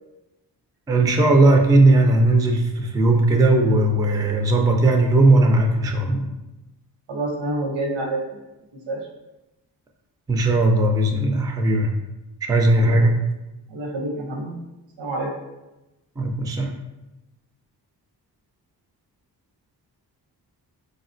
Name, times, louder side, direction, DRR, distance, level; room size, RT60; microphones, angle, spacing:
voice 1, 0.9-6.3 10.3-11.9 12.4-13.2 16.2-16.8, right 2 dB, 10° right, 3 dB, 0.3 m, -18 dB
voice 2, 7.1-8.4 8.9-9.0 12.8-13.1 13.7-14.6 15.0-15.3, right 2 dB, 85° right, 0 dB, 0.7 m, -28 dB
3.7 x 2.0 x 2.5 m, 1.0 s
cardioid pair, 55°, 43 cm